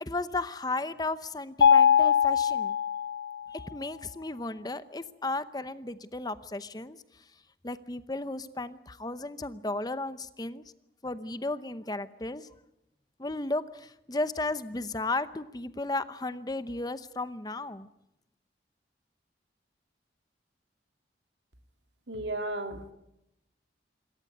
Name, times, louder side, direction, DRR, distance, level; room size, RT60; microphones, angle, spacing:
voice 1, 0.0-2.8 3.5-7.0 7.6-10.6 11.0-12.5 13.2-17.9, left 2 dB, 20° left, 13 dB, 0.8 m, -34 dB
Mallet percussion, 1.6-3.6, left 8 dB, 75° left, 0.8 m, -22 dB
voice 2, 22.1-22.9, right 1 dB, 80° right, 6 dB, 2.7 m, -34 dB
27.0 x 14.0 x 9.5 m, 0.86 s
head